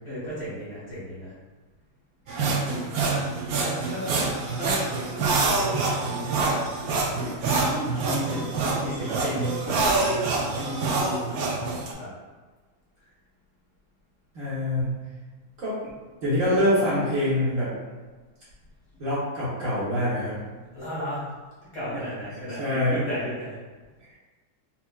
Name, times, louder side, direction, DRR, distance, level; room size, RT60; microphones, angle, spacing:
voice 1, 0.0-1.3 2.6-3.1 3.6-4.2 4.6-10.1 10.6-12.1 20.7-21.3 21.7-23.6, equal, 55° left, -9 dB, 2.0 m, -35 dB
sound 1, 2.3-11.9, right 3 dB, 70° right, 1.0 m, -26 dB
voice 2, 14.3-15.0 15.6-15.8 16.2-17.7 19.0-20.4 21.9-22.0 22.5-23.0, left 1 dB, 55° right, -9 dB, 1.5 m, -25 dB
4.5 x 2.8 x 2.3 m, 1.3 s
omnidirectional pair, 1.8 m